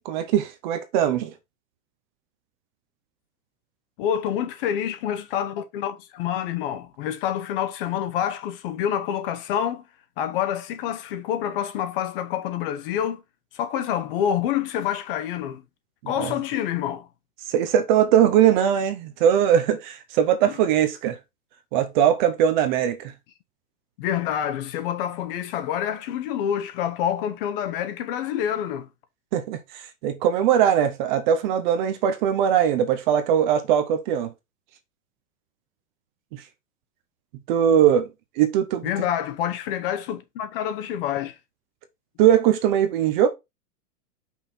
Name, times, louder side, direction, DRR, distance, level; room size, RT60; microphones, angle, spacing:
voice 1, 0.0-1.3 16.0-16.3 17.5-21.2 21.7-23.1 29.3-34.3 36.3-36.4 37.5-38.1 38.4-38.9 42.2-43.3, right 9 dB, 35° right, 0.7 m, -21 dB
voice 2, 4.0-9.8 10.2-13.2 13.5-15.6 16.1-17.1 20.5-20.6 24.0-28.9 37.7-37.9 38.8-41.4, left 10 dB, 40° left, 0.9 m, -27 dB
5.6 x 4.2 x 4.3 m
supercardioid pair, 160°, 45 cm